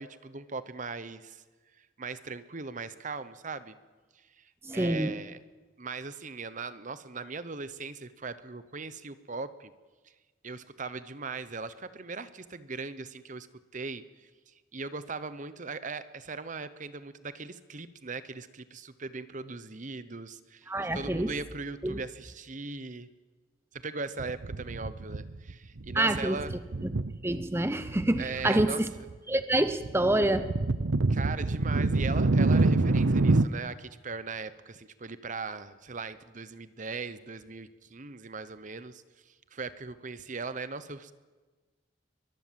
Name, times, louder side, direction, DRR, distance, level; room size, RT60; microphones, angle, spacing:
voice 1, 0.0-1.4 2.0-3.7 4.4-5.4 5.8-9.7 10.4-13.5 13.7-23.1 23.7-26.5 28.2-28.8 31.1-41.1, right 4 dB, 40° right, 13 dB, 1.0 m, -39 dB
voice 2, 4.6-5.1 20.7-21.3 21.8-22.0 25.9-26.4 27.2-28.9 29.3-30.5, right 1 dB, 15° right, 10 dB, 0.7 m, -27 dB
sound 1, 24.2-25.5 25.8-27.4 27.8-28.7 29.0-33.5, right 2 dB, 85° right, 0.8 m, -27 dB
22.5 x 22.0 x 7.6 m, 1.3 s
head